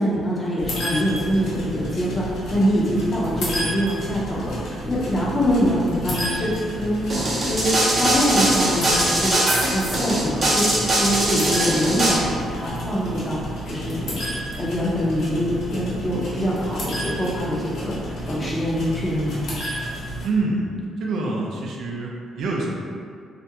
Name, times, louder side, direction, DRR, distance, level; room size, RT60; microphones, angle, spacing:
voice 1, 0.0-13.4 13.6-14.2 14.6-19.4, equal, 25° left, -6 dB, 0.7 m, -24 dB
sound 1, 0.6-20.3, equal, 75° left, 0.7 m, -32 dB
sound 2, 7.1-12.1, right 1 dB, 40° right, 0.6 m, -21 dB
voice 2, 20.2-20.7 21.0-22.7, right 3 dB, 75° right, -2 dB, 0.4 m, -25 dB
2.4 x 2.1 x 2.8 m, 2.2 s
cardioid pair, 90°, 0 cm